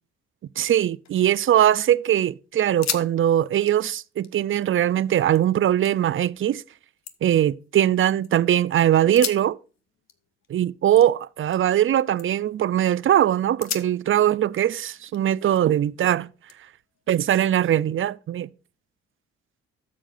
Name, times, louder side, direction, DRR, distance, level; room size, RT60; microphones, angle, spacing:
voice 1, 0.6-6.6 7.2-9.6 10.5-16.3 17.1-18.5, right 11 dB, 40° right, 0.5 m, -21 dB
sound 1, 1.0-1.8 2.2-2.3 2.6-3.1 3.4-5.4 5.8-6.4 6.8-8.3 9.0-11.9 12.2-12.6 13.0-13.1 13.6-15.9 16.5-17.7, left 8 dB, 55° left, 1.1 m, -37 dB
12.5 x 7.3 x 2.6 m
hypercardioid pair, 50°, 32 cm